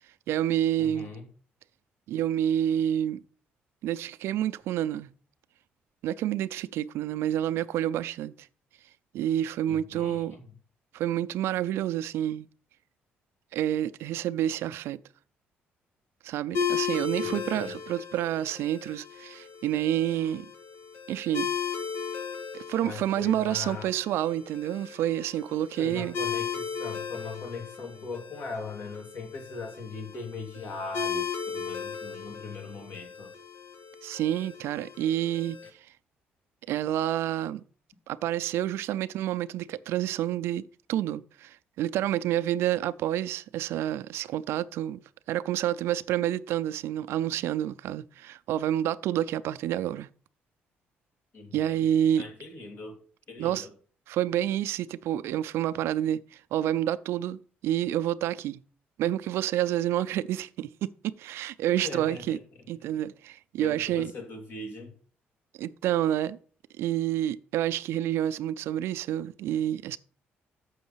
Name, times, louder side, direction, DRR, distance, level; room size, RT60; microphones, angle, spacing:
voice 1, 0.3-1.1 2.1-3.2 3.8-5.1 6.0-8.3 9.1-10.4 10.9-12.5 13.5-15.0 16.2-20.5 21.1-21.6 22.5-26.2 34.0-35.6 36.7-37.6 38.1-45.0 45.3-50.1 51.5-52.2 53.4-53.7 54.1-58.6 59.0-62.4 62.7-64.1 65.6-66.4 66.8-70.0, right 11 dB, 80° right, 0.4 m, -28 dB
voice 2, 0.8-1.3 9.7-10.4 17.1-17.8 22.8-23.9 25.8-33.3 51.3-51.8 52.2-53.0 53.3-53.7 61.8-62.7 63.6-64.9, left 4 dB, 55° left, 2.5 m, -40 dB
sound 1, 16.5-35.7, left 7 dB, 75° left, 1.7 m, -36 dB
7.0 x 6.2 x 5.6 m
cardioid pair, 95°, 4 cm